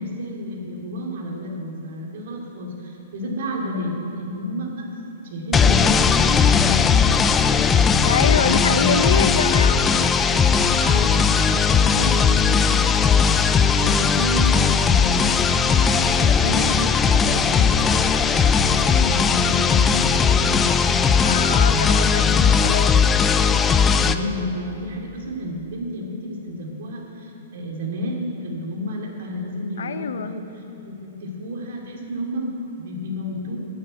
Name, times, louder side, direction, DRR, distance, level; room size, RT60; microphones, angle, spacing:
voice 1, 0.0-4.9 5.2-9.1 10.6-18.2 18.6-21.8 22.3-22.7 23.9-30.5 30.8-33.6, left 1 dB, 60° right, -1 dB, 2.6 m, -31 dB
sound 1, 5.5-24.1, left 6 dB, 10° left, 0.3 m, -18 dB
voice 2, 8.0-9.8 21.2-22.9 29.8-30.3, left 6 dB, 90° left, 11 dB, 0.7 m, -25 dB
sound 2, 22.9-25.4, left 2 dB, 45° left, 2.5 m, -39 dB
9.4 x 8.8 x 8.8 m, 2.9 s
hypercardioid pair, 170°, 0 cm